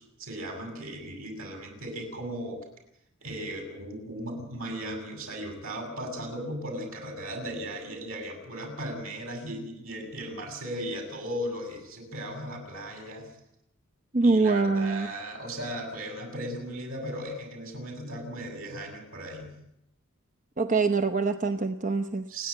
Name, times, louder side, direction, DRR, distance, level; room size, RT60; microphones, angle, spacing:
voice 1, 0.0-2.6 3.2-13.3 14.2-19.5 22.3-22.5, right 1 dB, 75° right, 3 dB, 7.6 m, -37 dB
voice 2, 14.1-15.1 20.6-22.2, right 3 dB, 35° right, 7 dB, 0.8 m, -24 dB
29.5 x 11.0 x 8.7 m, 0.80 s
head